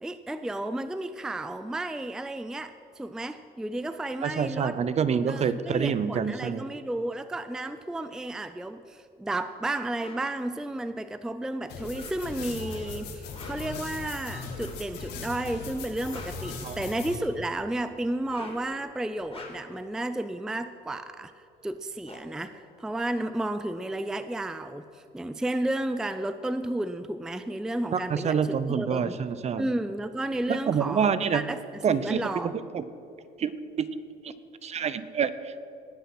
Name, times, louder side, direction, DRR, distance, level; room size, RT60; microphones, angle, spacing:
voice 1, 0.0-4.8 5.3-21.3 21.6-29.2 29.6-32.6, right 1 dB, 5° right, 11 dB, 0.4 m, -32 dB
voice 2, 4.2-6.6 16.6-16.8 27.9-29.7 30.5-31.4 31.8-32.2 32.7-32.8 33.4-33.5 33.8-33.9 34.6-35.6, right 7 dB, 40° right, 14 dB, 0.7 m, -27 dB
sound 1, 10.0-10.3 11.8-12.5 13.2-13.8 14.5-14.9 15.8-17.1 18.1-18.7 19.2-19.8 21.4-21.5 21.7-23.4, left 3 dB, 35° left, 2.9 m, -47 dB
sound 2, 11.7-17.2, left 4 dB, 80° left, 2.1 m, -38 dB
18.5 x 7.1 x 6.1 m, 2.6 s
cardioid pair, 110°, 17 cm